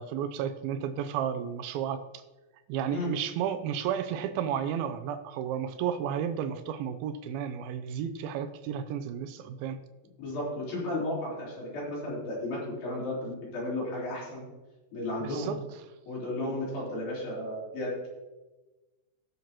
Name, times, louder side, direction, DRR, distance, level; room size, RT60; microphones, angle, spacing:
voice 1, 0.0-2.0 2.7-9.8 15.2-15.6, right 8 dB, 90° right, 9 dB, 2.5 m, -32 dB
voice 2, 10.2-14.4 14.9-15.5 16.1-18.1, left 1 dB, 75° left, -6 dB, 5.8 m, -34 dB
18.0 x 6.8 x 3.0 m, 1.1 s
omnidirectional pair, 4.2 m